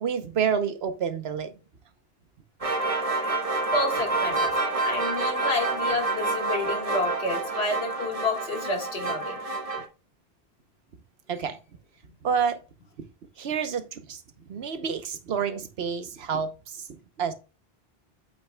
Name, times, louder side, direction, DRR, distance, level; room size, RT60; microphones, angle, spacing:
voice 1, 0.0-1.5 11.3-11.6 12.2-12.6 13.4-14.2 14.5-17.3, right 7 dB, 85° right, 1.1 m, -29 dB
sound 1, 2.6-9.9, right 3 dB, 35° right, 1.1 m, -28 dB
voice 2, 3.7-9.4, left 2 dB, 85° left, 1.9 m, -29 dB
8.0 x 8.0 x 2.2 m
omnidirectional pair, 1.0 m